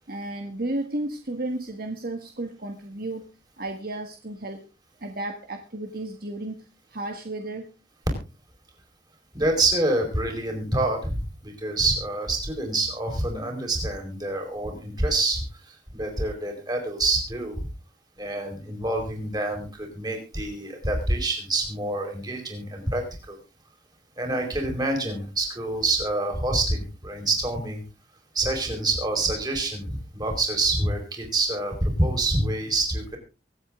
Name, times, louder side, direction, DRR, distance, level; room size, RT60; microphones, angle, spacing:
voice 1, 0.1-3.3 3.6-4.6 5.0-6.6 6.9-7.7, right 2 dB, 55° right, 5 dB, 1.6 m, -33 dB
voice 2, 9.3-15.4 15.9-17.7 18.2-23.4 24.2-27.8 28.3-33.2, right 2 dB, 20° right, 2 dB, 4.8 m, -26 dB
24.0 x 8.4 x 3.7 m, 0.31 s
head